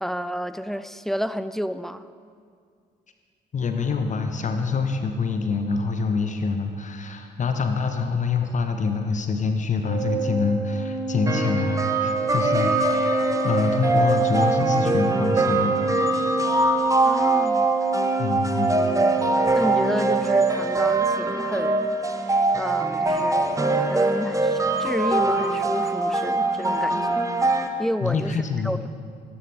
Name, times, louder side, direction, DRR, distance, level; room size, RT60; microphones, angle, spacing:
voice 1, 0.0-2.1 17.0-17.7 19.5-22.0 22.5-28.9, equal, ahead, 13 dB, 0.4 m, -31 dB
voice 2, 3.5-13.1 13.4-15.7 18.2-18.8 28.0-28.9, left 4 dB, 35° left, 5 dB, 0.9 m, -25 dB
Organ, 9.8-20.6, right 4 dB, 75° right, 0.7 m, -28 dB
sound 1, 11.3-27.7, right 2 dB, 15° right, 1.0 m, -23 dB
14.0 x 13.5 x 3.3 m, 2.2 s
figure-of-eight pair, 40°, 21 cm